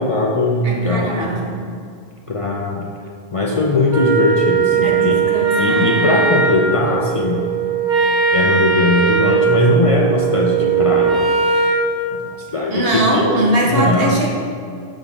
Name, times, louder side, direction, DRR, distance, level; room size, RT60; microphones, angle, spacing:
voice 1, 0.0-1.4 2.3-2.9 3.3-7.5 7.8-7.9 8.3-11.2 12.5-13.3 13.7-14.2, left 2 dB, 45° left, -2 dB, 0.5 m, -19 dB
voice 2, 0.6-1.6 4.7-6.0 12.7-14.3, right 1 dB, 65° right, -2 dB, 1.3 m, -20 dB
Wind instrument woodwind instrument, 3.9-11.9, right 5 dB, 5° right, 0.9 m, -18 dB
7.1 x 3.5 x 5.3 m, 2.3 s
omnidirectional pair, 1.1 m